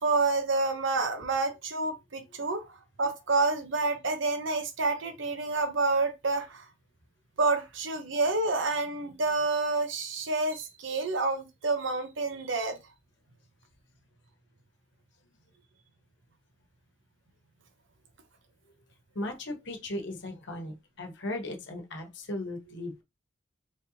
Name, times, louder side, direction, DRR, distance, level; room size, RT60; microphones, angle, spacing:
voice 1, 0.0-2.7 3.0-6.7 7.4-12.8, right 3 dB, 65° right, 0.9 m, -28 dB
voice 2, 19.1-23.0, left 1 dB, 60° left, 1.1 m, -37 dB
4.1 x 3.3 x 2.8 m
head